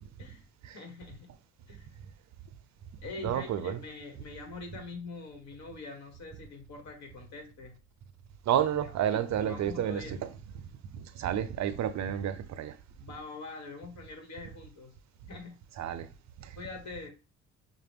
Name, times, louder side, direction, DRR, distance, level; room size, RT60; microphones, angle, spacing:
voice 1, 0.7-1.3 1.7-1.9 3.0-7.8 8.7-10.2 13.0-14.9 15.3-15.6 16.5-17.1, left 3 dB, 65° left, 1.5 m, -44 dB
voice 2, 3.2-3.8 8.5-10.3 10.9-12.8 15.8-16.1 16.4-16.5, right 10 dB, 65° right, 0.6 m, -30 dB
5.8 x 2.1 x 3.5 m
cardioid pair, 90°, 30 cm